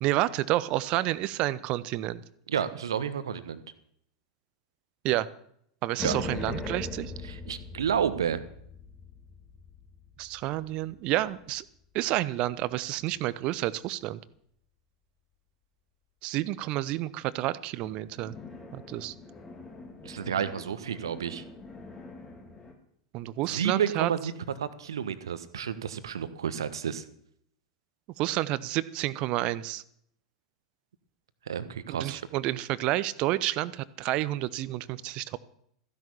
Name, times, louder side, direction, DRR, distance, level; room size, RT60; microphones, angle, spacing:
voice 1, 0.0-2.2 5.0-5.3 5.8-7.1 10.2-11.6 11.9-14.2 16.2-18.4 18.7-19.1 23.1-24.1 28.2-29.8 31.9-35.4, right 16 dB, 40° right, 18 dB, 0.8 m, -29 dB
voice 2, 2.5-3.6 6.0-6.2 7.2-8.4 20.0-21.4 23.5-27.0 31.5-32.2, right 8 dB, 65° right, 13 dB, 1.3 m, -31 dB
sound 1, 6.0-12.5 17.8-22.7, left 3 dB, 15° left, 3.0 m, -42 dB
15.0 x 10.5 x 7.1 m, 0.69 s
figure-of-eight pair, 90°, 3 cm